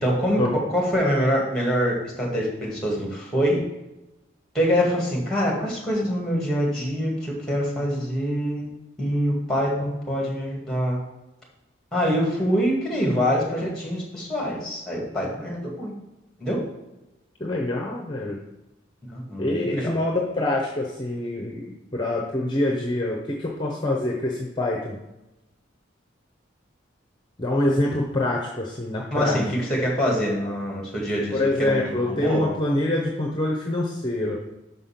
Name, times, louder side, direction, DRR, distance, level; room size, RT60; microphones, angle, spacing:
voice 1, 0.0-3.6 4.5-8.7 9.0-11.0 11.9-15.9 16.4-16.6 19.1-19.9 29.1-32.5, equal, 5° left, -2 dB, 1.9 m, -25 dB
voice 2, 17.4-18.4 19.4-25.0 27.4-29.4 31.3-34.4, left 1 dB, 25° left, -1 dB, 0.7 m, -25 dB
5.7 x 5.5 x 5.8 m, 0.97 s
head